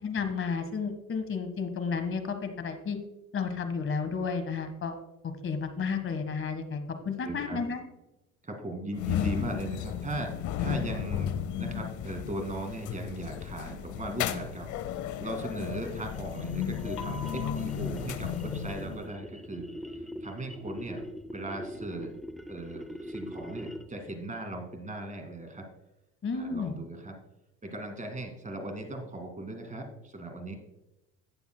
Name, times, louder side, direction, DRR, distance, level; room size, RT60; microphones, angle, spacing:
voice 1, 0.0-3.0 3.3-4.9 5.2-7.8 26.2-26.7, left 5 dB, 35° left, 8 dB, 1.6 m, -32 dB
voice 2, 7.2-7.6 8.4-10.3 10.6-21.0 21.3-22.1 22.5-25.6 26.3-27.1 27.6-30.6, right 1 dB, 20° right, 4 dB, 2.3 m, -38 dB
sound 1, 8.9-19.1, left 9 dB, 55° left, 0.8 m, -34 dB
sound 2, 15.4-24.1, equal, ahead, 0.5 m, -43 dB
17.5 x 7.0 x 2.3 m, 0.91 s
hypercardioid pair, 80°, 37 cm